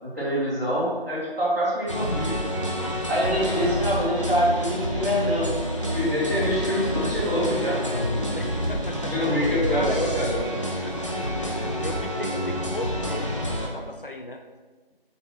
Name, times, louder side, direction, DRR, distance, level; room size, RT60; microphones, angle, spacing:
voice 1, 0.0-2.4 3.1-5.5 5.9-8.0 9.1-10.4, equal, 15° right, -14 dB, 2.5 m, -25 dB
sound 1, 1.9-13.7, equal, 30° left, 0.8 m, -28 dB
voice 2, 8.3-10.1 10.8-11.3 11.8-14.4, left 2 dB, 60° left, 4 dB, 0.7 m, -35 dB
7.3 x 4.0 x 6.1 m, 1.3 s
figure-of-eight pair, 175°, 30 cm